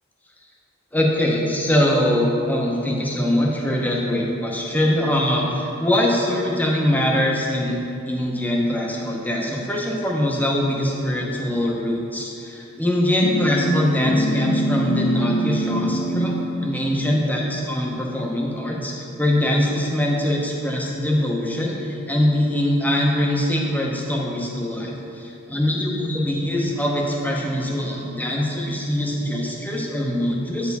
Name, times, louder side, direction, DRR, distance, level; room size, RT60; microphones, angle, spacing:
voice 1, 0.9-7.8 8.0-30.8, left 1 dB, 10° left, -2 dB, 0.8 m, -22 dB
sound 1, 13.2-16.5, equal, 85° left, 0.6 m, -23 dB
9.2 x 4.5 x 3.5 m, 2.7 s
head